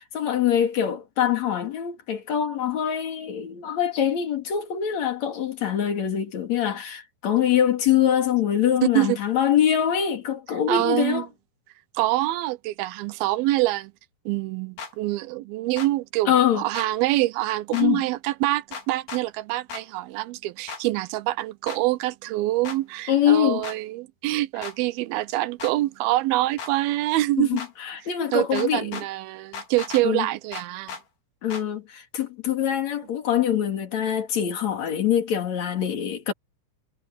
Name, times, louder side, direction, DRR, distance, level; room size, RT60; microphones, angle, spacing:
voice 1, 0.0-11.3 16.3-16.6 17.7-18.0 23.1-23.7 27.4-29.0 30.0-30.3 31.4-36.3, left 10 dB, 50° left, 3.5 m, -24 dB
voice 2, 10.7-11.2 11.9-13.9 14.3-27.6 28.3-31.0, right 17 dB, 85° right, 2.5 m, -25 dB
sound 1, 14.8-14.9 15.8-15.9 16.7-16.9 17.7-17.9 18.7-19.2 19.7-19.8 20.7-20.8 21.7-21.8 22.6-22.8 23.6-23.8 24.6-24.8 25.6-25.7 26.6-26.7 27.6-27.7 28.5-29.1 29.5-30.0 30.5-31.0 31.5-31.6, left 5 dB, 90° left, 5.8 m, -36 dB
omnidirectional pair, 4.3 m